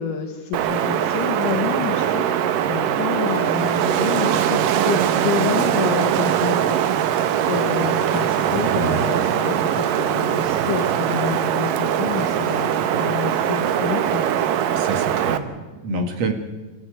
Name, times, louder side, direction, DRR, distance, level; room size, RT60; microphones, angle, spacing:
voice 1, 0.0-2.3 2.6-6.7 7.0-9.6 9.9-14.2 15.9-16.1, left 8 dB, 70° left, 2 dB, 3.0 m, -28 dB
Wind, 0.5-15.4, right 10 dB, 80° right, 2.7 m, -21 dB
voice 2, 8.8-9.1 14.7-16.3, right 6 dB, 55° right, 5 dB, 2.8 m, -28 dB
27.0 x 14.5 x 9.3 m, 1.2 s
omnidirectional pair, 3.9 m